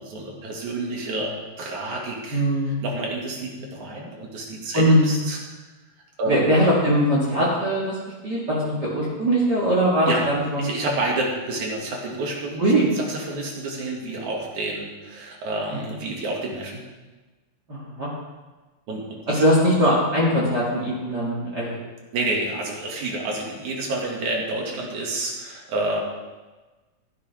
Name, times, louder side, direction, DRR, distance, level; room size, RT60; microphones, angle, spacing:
voice 1, 0.0-5.4 6.2-6.5 10.1-10.3 10.6-16.8 18.9-19.4 22.1-26.0, right 2 dB, 75° right, -1 dB, 3.6 m, -29 dB
voice 2, 2.3-2.8 4.7-5.1 6.3-8.0 8.2-10.7 12.6-12.9 17.7-18.1 19.3-21.8, equal, 35° right, -6 dB, 2.5 m, -21 dB
15.5 x 11.5 x 3.5 m, 1.2 s
omnidirectional pair, 3.4 m